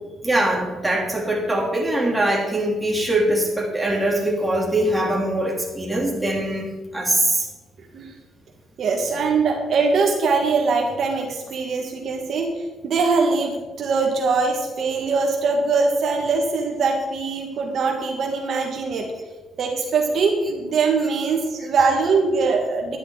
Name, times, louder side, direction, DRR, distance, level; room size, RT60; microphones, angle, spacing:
voice 1, 0.2-7.4, right 1 dB, 10° right, -2 dB, 3.1 m, -22 dB
voice 2, 8.8-12.5 12.8-19.1 19.6-23.0, right 4 dB, 60° right, 1 dB, 1.8 m, -22 dB
10.5 x 10.0 x 4.9 m, 1.2 s
cardioid pair, 90°, 0 cm